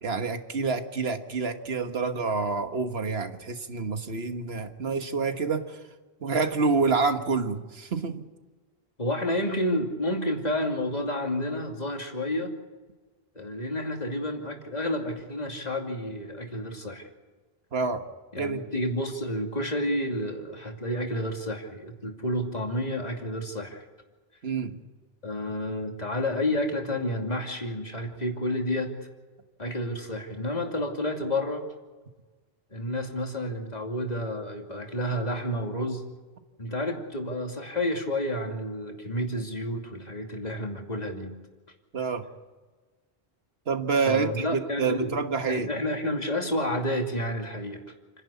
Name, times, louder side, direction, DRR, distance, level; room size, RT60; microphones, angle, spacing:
voice 1, 0.0-5.8 6.2-8.2 17.7-18.0 18.4-18.6 24.4-24.8 41.9-42.2 43.7-45.7, right 4 dB, 80° right, 7 dB, 1.7 m, -27 dB
voice 2, 9.0-12.5 13.3-17.1 18.3-23.8 25.2-28.9 29.6-31.6 32.7-36.0 36.6-41.3 44.1-45.2 45.5-47.8, left 1 dB, 40° left, 2 dB, 2.8 m, -30 dB
29.0 x 11.0 x 8.5 m, 1.3 s
omnidirectional pair, 1.0 m